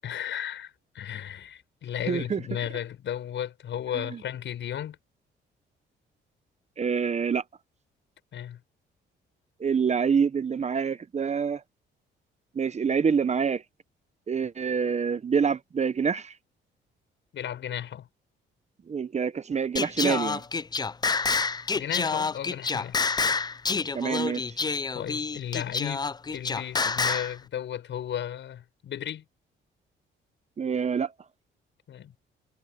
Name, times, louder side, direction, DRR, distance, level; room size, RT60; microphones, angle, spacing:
voice 1, 0.0-5.0 8.3-8.6 17.3-18.1 21.7-23.0 24.9-26.1 26.3-29.2 31.9-32.1, left 10 dB, 70° left, 6.7 m, -34 dB
voice 2, 2.1-2.4 6.8-7.4 9.6-11.6 12.6-13.6 14.3-16.3 18.9-20.4 23.9-24.4 30.6-31.1, right 6 dB, 35° right, 0.9 m, -26 dB
Singing, 19.8-27.3, left 4 dB, 20° left, 0.5 m, -28 dB
cardioid pair, 90°, 20 cm